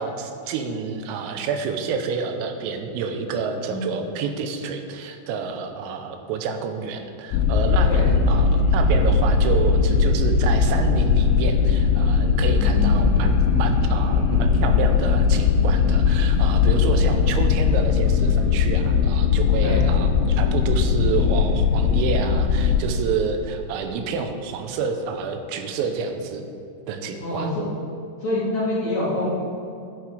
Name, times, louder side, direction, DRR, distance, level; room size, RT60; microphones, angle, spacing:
voice 1, 0.0-26.5 26.9-27.5, right 5 dB, 90° right, 6 dB, 3.6 m, -29 dB
sound 1, 7.3-22.8, left 5 dB, 85° left, 3.1 m, -19 dB
voice 2, 12.6-13.2 19.6-19.8 27.2-27.6 28.2-29.3, left 1 dB, 50° left, -8 dB, 2.6 m, -26 dB
11.0 x 10.5 x 5.0 m, 2.7 s
omnidirectional pair, 5.8 m